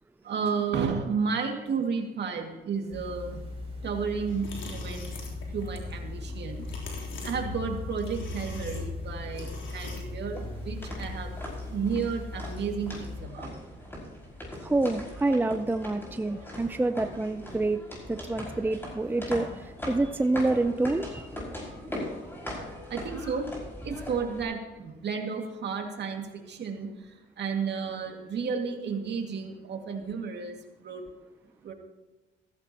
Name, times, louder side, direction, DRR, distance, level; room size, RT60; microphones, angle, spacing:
voice 1, 0.2-3.4 3.8-5.1 5.5-6.6 7.2-11.4 11.7-13.5 22.9-23.5 23.8-31.0 31.6-31.7, right 5 dB, 60° right, 3 dB, 2.1 m, -32 dB
sound 1, 2.9-13.2, left 3 dB, 30° right, 5.4 m, -38 dB
sound 2, 4.3-11.3, left 2 dB, 75° left, 3.5 m, -44 dB
sound 3, 10.3-24.4, left 1 dB, 10° left, 5.2 m, -40 dB
voice 2, 14.6-17.8 18.1-21.3, right 2 dB, 10° right, 10 dB, 0.5 m, -27 dB
15.0 x 14.5 x 2.9 m, 1.1 s
cardioid pair, 90°, 20 cm